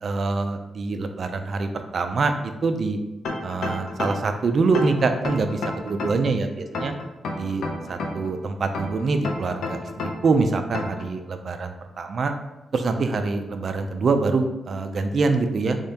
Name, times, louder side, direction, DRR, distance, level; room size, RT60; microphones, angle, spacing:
voice 1, 0.0-3.0 3.4-6.9 7.4-12.3 12.7-15.8, right 3 dB, 45° right, 6 dB, 0.3 m, -25 dB
sound 1, 3.2-4.3 4.7-6.3 6.7-8.3 8.7-10.3 10.7-11.1, left 3 dB, 80° left, 0.6 m, -30 dB
3.5 x 3.3 x 2.7 m, 0.98 s
wide cardioid pair, 160°, 0 cm